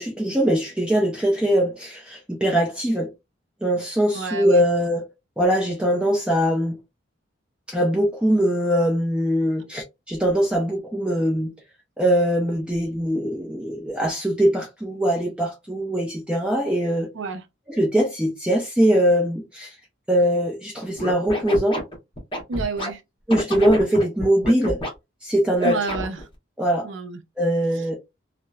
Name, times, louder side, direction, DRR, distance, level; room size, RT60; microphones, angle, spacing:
voice 1, 0.0-3.1 3.6-5.1 5.4-6.8 7.7-11.5 12.0-17.1 17.7-19.7 20.1-21.8 23.3-24.8 25.2-25.8 26.6-26.9 27.4-27.9, equal, 5° right, 0.5 m, -22 dB
voice 2, 4.1-4.6 17.1-17.5 22.5-23.0 25.6-26.2 26.8-27.2, right 4 dB, 70° right, 0.5 m, -29 dB
Scratching (performance technique), 21.0-22.9 23.3-24.9 25.6-26.2, equal, 25° left, 0.8 m, -29 dB
2.8 x 2.0 x 2.2 m
head